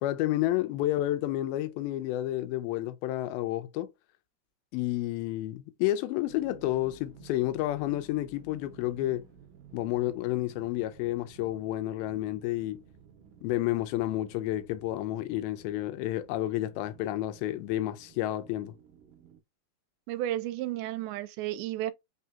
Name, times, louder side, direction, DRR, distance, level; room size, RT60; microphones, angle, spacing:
voice 1, 0.0-3.9 4.7-9.2 9.7-12.8 13.4-18.8, left 15 dB, 85° left, 2.5 m, -30 dB
sound 1, 6.3-19.4, right 6 dB, 75° right, 2.2 m, -55 dB
voice 2, 20.1-21.9, right 13 dB, 90° right, 2.4 m, -32 dB
5.6 x 2.8 x 2.2 m
omnidirectional pair, 4.2 m